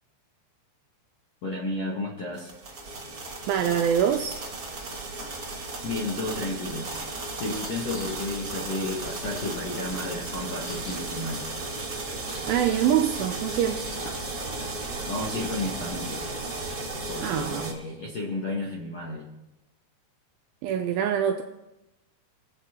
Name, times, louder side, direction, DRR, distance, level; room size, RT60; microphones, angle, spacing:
voice 1, 1.4-2.5 5.8-6.9 7.4-11.4 15.1-16.2 17.1-19.3, left 2 dB, 65° left, -4 dB, 1.6 m, -32 dB
sound 1, 2.4-17.7, right 2 dB, 50° right, 1.1 m, -35 dB
voice 2, 3.5-4.4 12.5-13.9 17.2-17.7 20.6-21.4, right 9 dB, 80° right, 5 dB, 2.2 m, -24 dB
sound 2, 7.6-8.4 8.7-8.8 9.0-11.3 11.6-11.7 12.0-14.4 17.0-17.3 17.5-18.0, right 1 dB, 10° right, 3.9 m, -48 dB
21.0 x 7.7 x 2.8 m, 0.95 s
omnidirectional pair, 4.8 m